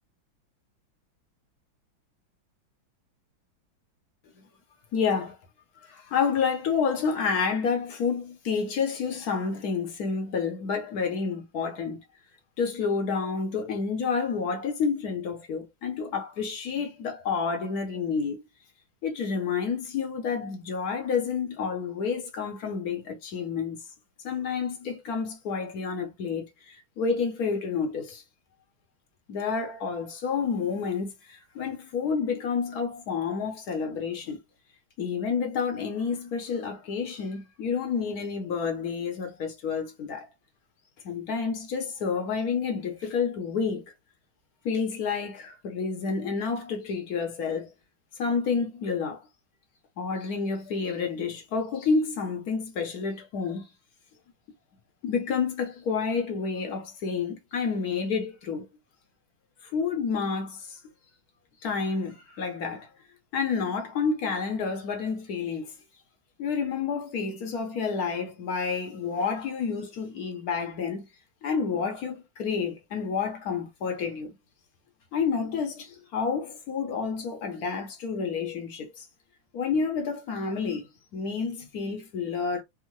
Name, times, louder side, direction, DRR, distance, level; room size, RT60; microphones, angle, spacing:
voice 1, 4.9-5.3 5.8-12.0 12.6-18.4 19.0-23.8 24.2-28.2 29.3-34.4 35.0-40.3 41.0-43.9 44.6-47.7 48.2-49.2 50.0-53.7 55.0-58.7 59.6-60.8 61.6-62.9 63.3-65.7 66.4-71.1 71.4-74.3 75.1-79.0 79.5-82.6, left 5 dB, 65° left, 1.0 m, -29 dB
3.6 x 2.0 x 3.0 m
omnidirectional pair, 2.2 m